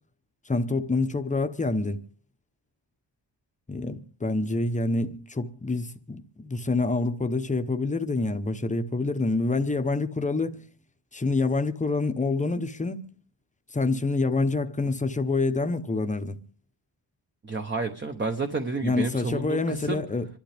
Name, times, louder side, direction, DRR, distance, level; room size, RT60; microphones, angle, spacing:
voice 1, 0.5-2.0 3.7-10.7 11.1-13.0 13.7-16.4 18.8-20.3, left 3 dB, 15° left, 0.8 m, -27 dB
voice 2, 17.4-20.0, right 3 dB, 25° right, 0.9 m, -30 dB
26.5 x 12.0 x 3.4 m
wide cardioid pair, 170°, 46 cm